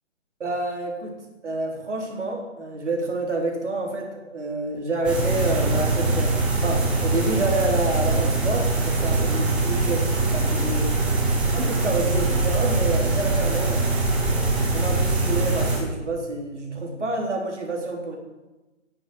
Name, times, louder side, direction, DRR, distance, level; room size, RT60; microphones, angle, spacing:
voice 1, 0.4-6.3 6.6-10.0 10.3-11.0 11.5-14.0 14.7-18.2, right 2 dB, 65° right, 0 dB, 4.2 m, -28 dB
sound 1, 5.0-15.8, right 2 dB, 5° right, 0.6 m, -22 dB
11.5 x 7.9 x 8.1 m, 1.1 s
figure-of-eight pair, 140°, 38 cm